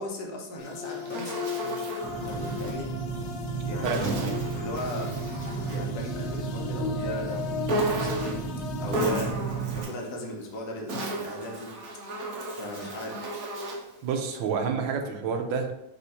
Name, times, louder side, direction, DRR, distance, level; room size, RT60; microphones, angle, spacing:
voice 1, 0.0-1.9 2.2-2.9 3.6-4.1 4.5-5.2 5.7-8.4 8.8-11.8 12.5-13.3, left 1 dB, 60° left, 1 dB, 1.3 m, -37 dB
sound 1, 0.6-9.2, left 7 dB, 85° left, 1.5 m, -37 dB
Insect, 0.6-2.8 3.8-5.9 7.7-8.5 8.9-10.0 10.7-13.9, right 1 dB, 55° right, 1.2 m, -34 dB
Large ship engine running recorded in cabin, 2.0-9.8, right 5 dB, ahead, 1.0 m, -33 dB
voice 2, 3.8-4.4 14.0-15.7, right 5 dB, 75° right, 4 dB, 1.3 m, -29 dB
4.2 x 2.8 x 4.0 m, 0.86 s
omnidirectional pair, 2.2 m